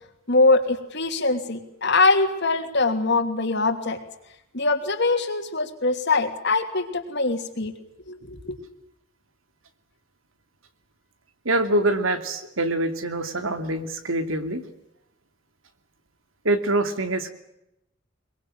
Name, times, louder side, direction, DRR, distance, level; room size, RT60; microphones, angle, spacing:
voice 1, 0.3-4.0 4.5-7.7 8.1-8.6, left 3 dB, 55° left, 6 dB, 3.0 m, -22 dB
voice 2, 11.4-14.6 16.4-17.3, right 2 dB, 90° right, 9 dB, 2.6 m, -24 dB
23.0 x 22.0 x 8.8 m, 0.84 s
head